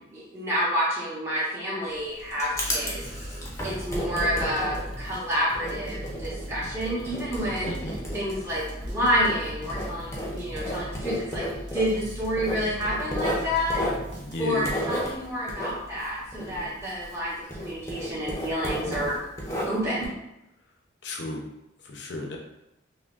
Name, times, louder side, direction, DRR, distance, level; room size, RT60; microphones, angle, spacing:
voice 1, 0.1-3.1 3.6-7.7 8.1-11.5 11.7-13.8 14.4-19.2 19.7-20.1, equal, 15° right, -8 dB, 0.9 m, -29 dB
Writing, 1.9-17.2 17.5-20.1, equal, 15° left, 0.6 m, -33 dB
sound 1, 2.5-14.7, equal, 60° right, 0.8 m, -39 dB
voice 2, 7.6-7.9 14.2-14.7 18.8-19.1 21.0-21.4 21.8-22.4, left 1 dB, 60° left, 1 dB, 0.6 m, -34 dB
5.5 x 2.1 x 2.4 m, 0.87 s
head